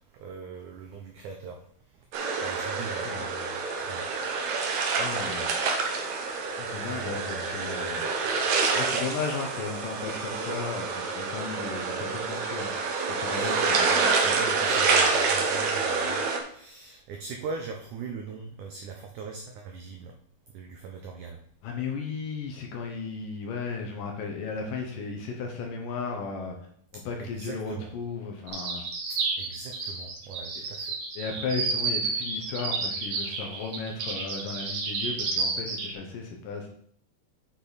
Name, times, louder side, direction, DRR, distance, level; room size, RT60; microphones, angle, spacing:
voice 1, 0.1-1.6 1.9-2.0 2.4-3.6 3.9-4.1 4.6-5.0 6.8-8.1 13.3-13.6 14.1-20.1 20.5-21.4 27.2-27.9 29.4-30.9, right 5 dB, 85° right, 2 dB, 1.7 m, -41 dB
sound 1, 2.1-16.4, right 4 dB, 70° right, 1.8 m, -27 dB
voice 2, 2.9-3.3 5.0-5.5 6.6-8.1 8.7-12.7 13.1-14.4 21.6-26.6 26.9-28.8 31.2-36.7, left 5 dB, 70° left, 2 dB, 2.3 m, -35 dB
sound 2, 28.5-35.9, right 4 dB, 55° right, 2.2 m, -31 dB
8.7 x 6.1 x 4.1 m, 0.62 s
omnidirectional pair, 4.7 m